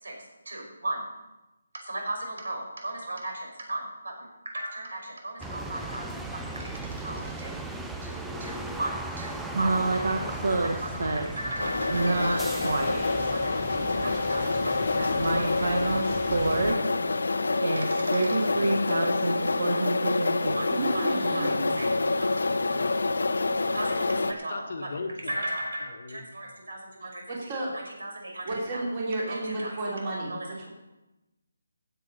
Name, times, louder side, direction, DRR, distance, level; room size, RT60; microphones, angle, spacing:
voice 1, 0.5-1.0 1.8-4.3 4.5-7.5 8.0-9.7 10.6-12.8 13.3-15.7 17.8-18.4 20.5-20.7 20.9-21.9 23.7-24.9 25.2-27.2 27.7-28.8 29.3-29.8 30.3-30.5, right 1 dB, 75° right, 1 dB, 5.3 m, -37 dB
sound 1, 5.4-16.7, right 2 dB, ahead, 0.4 m, -38 dB
voice 2, 9.5-11.2 11.8-13.3 15.1-16.8 17.6-20.6, right 3 dB, 60° right, 2 dB, 1.4 m, -28 dB
sound 2, 11.6-24.3, left 3 dB, 70° left, 0.9 m, -27 dB
voice 3, 14.3-15.3 21.9-23.0 24.1-25.3 25.9-26.2, left 3 dB, 45° left, 5 dB, 1.3 m, -39 dB
voice 4, 20.7-21.8 27.0-27.7 28.4-30.7, right 2 dB, 25° right, -3 dB, 2.9 m, -32 dB
15.5 x 8.1 x 5.3 m, 1.0 s
hypercardioid pair, 175°, 0 cm